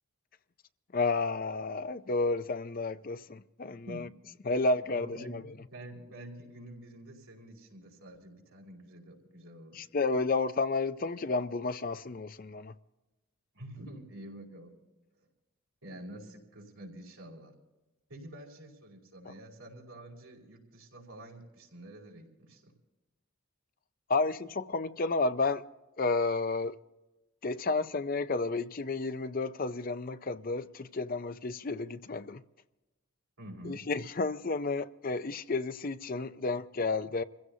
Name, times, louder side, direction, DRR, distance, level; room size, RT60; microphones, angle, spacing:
voice 1, 0.9-4.1 4.4-5.4 9.7-12.7 19.3-19.4 24.1-25.6 26.0-26.8 27.4-32.4 33.6-37.2, left 3 dB, 40° left, 0.5 m, -31 dB
voice 2, 4.9-9.9 13.5-14.7 15.8-17.5 18.1-22.7 33.4-33.8, right 1 dB, 80° right, 4.9 m, -48 dB
27.0 x 16.0 x 2.7 m
head